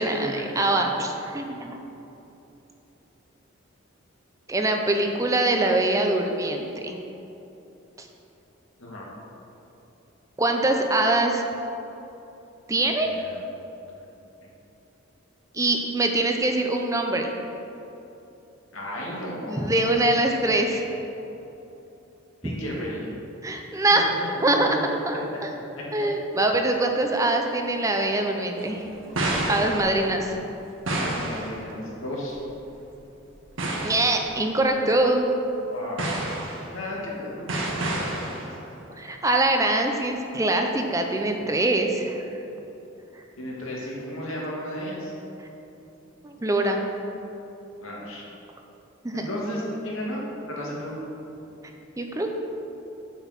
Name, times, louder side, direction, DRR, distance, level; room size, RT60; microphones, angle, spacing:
voice 1, 0.0-1.8 4.5-7.0 10.4-11.4 12.7-13.1 15.5-17.3 19.4-20.9 22.4-22.5 23.4-24.1 24.4-24.8 25.1-25.5 25.9-28.8 29.5-30.3 33.8-35.3 39.0-42.2 46.2-46.8 49.0-49.2 52.0-52.3, right 2 dB, 15° right, 3 dB, 0.6 m, -23 dB
voice 2, 13.0-13.4 18.7-20.0 20.4-20.5 22.4-23.1 24.6-25.0 25.3-25.4 25.7-26.0 27.5-27.6 28.9-29.5 30.8-32.4 35.7-36.0 36.7-38.5 43.4-45.1 47.8-48.2 49.1-50.9, left 1 dB, 90° left, -4 dB, 2.3 m, -34 dB
sound 1, 28.6-30.3 30.9-31.7 32.2-32.4 33.3-33.4 33.6-34.4 34.9-35.0 36.0-36.8 37.5-38.6, right 1 dB, 75° right, 1.4 m, -29 dB
7.8 x 7.0 x 6.0 m, 3.0 s
head